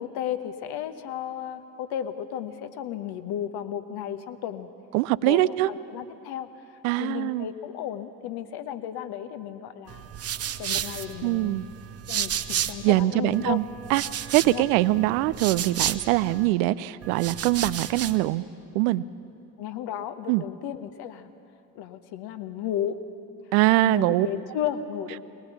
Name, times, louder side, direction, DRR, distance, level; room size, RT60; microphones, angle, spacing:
voice 1, 0.0-4.7 5.3-10.1 10.6-11.6 12.1-13.6 14.4-14.7 19.6-21.3 21.7-23.0 23.8-25.2, left 10 dB, 50° left, 10 dB, 1.2 m, -34 dB
voice 2, 4.9-5.7 6.8-7.5 11.2-11.7 12.8-13.6 13.9-14.0 14.3-18.4 18.7-19.0 20.3-20.4 23.5-24.3, right 17 dB, 60° right, 17 dB, 0.6 m, -23 dB
sound 1, 9.9-13.0 13.3-16.5 17.0-18.3, right 9 dB, 30° right, 0.8 m, -32 dB
21.0 x 19.0 x 7.2 m, 2.7 s
figure-of-eight pair, 50°, 49 cm